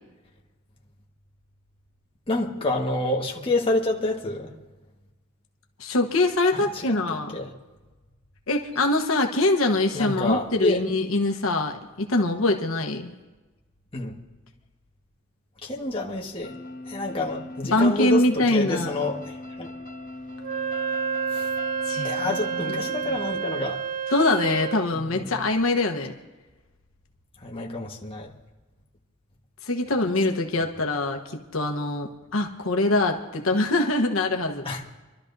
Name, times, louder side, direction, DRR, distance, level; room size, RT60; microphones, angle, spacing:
voice 1, 2.3-4.5 6.5-7.5 9.9-10.8 13.9-14.1 15.6-16.5 16.9-19.7 21.3-21.5 22.0-23.8 25.1-25.3 27.4-28.3 34.6-34.8, left 2 dB, 25° left, -1 dB, 1.5 m, -28 dB
voice 2, 5.8-7.3 8.5-13.1 17.6-18.9 21.9-22.4 22.7-22.8 24.1-26.1 29.6-34.6, left 2 dB, 80° left, 3 dB, 1.1 m, -23 dB
sound 1, 16.4-23.3, left 2 dB, 45° left, 1.8 m, -39 dB
Wind instrument woodwind instrument, 20.4-24.9, right 7 dB, 40° right, 0.4 m, -29 dB
27.5 x 12.5 x 2.7 m, 1.2 s
head